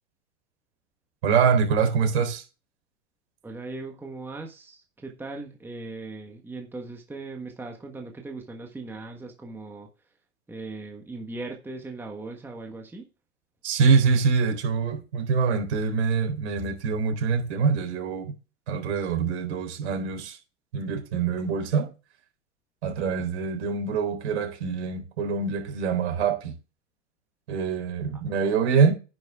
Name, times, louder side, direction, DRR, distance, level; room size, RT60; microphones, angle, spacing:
voice 1, 1.2-2.4 13.6-18.3 18.7-20.4 20.7-21.9 22.8-26.5 27.5-28.9, right 5 dB, 70° right, 4.0 m, -24 dB
voice 2, 3.4-9.9 10.5-13.1, right 3 dB, 5° right, 1.4 m, -39 dB
10.0 x 6.3 x 3.6 m
hypercardioid pair, 130°, 35 cm